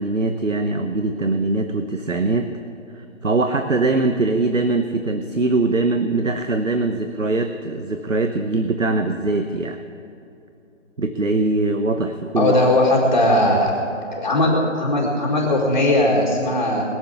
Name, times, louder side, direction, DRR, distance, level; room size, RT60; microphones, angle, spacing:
voice 1, 0.0-2.6 3.0-9.8 11.0-12.5, right 2 dB, 70° right, 7 dB, 1.1 m, -22 dB
voice 2, 12.4-13.7 14.2-16.8, left 1 dB, 30° left, -3 dB, 1.9 m, -18 dB
21.5 x 7.5 x 8.5 m, 2.8 s
figure-of-eight pair, 155°, 39 cm